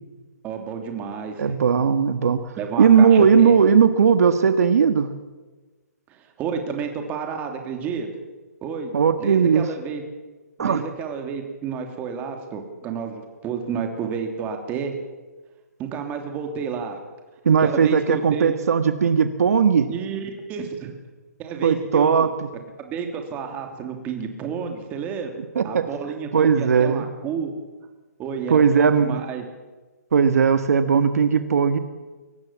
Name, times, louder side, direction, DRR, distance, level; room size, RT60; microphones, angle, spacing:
voice 1, 0.4-1.5 2.6-3.6 6.1-8.1 8.6-8.9 9.2-10.0 10.6-15.0 15.8-17.0 17.6-18.5 19.9-20.9 21.4-22.3 22.8-25.4 25.6-27.5 28.2-29.4, right 6 dB, 15° right, 4 dB, 3.0 m, -30 dB
voice 2, 1.4-5.1 8.9-9.6 10.6-10.8 17.4-19.9 21.6-22.5 25.5-25.9 26.3-27.0 28.5-29.1 30.1-31.8, right 6 dB, 65° right, 9 dB, 1.7 m, -18 dB
23.0 x 18.5 x 7.5 m, 1.3 s
hypercardioid pair, 160°, 9 cm